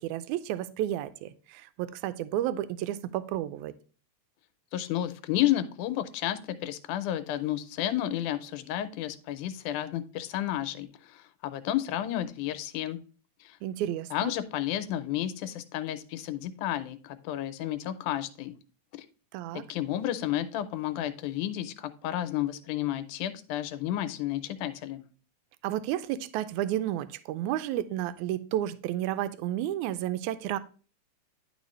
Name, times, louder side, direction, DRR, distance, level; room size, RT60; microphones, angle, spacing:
voice 1, 0.0-3.7 13.6-14.3 19.3-19.6 25.6-30.6, right 12 dB, 80° right, 12 dB, 1.9 m, -32 dB
voice 2, 4.7-13.0 13.4-13.6 14.1-18.6 19.7-25.0, left 12 dB, 90° left, 11 dB, 2.1 m, -31 dB
10.5 x 4.3 x 3.1 m, 0.37 s
omnidirectional pair, 3.5 m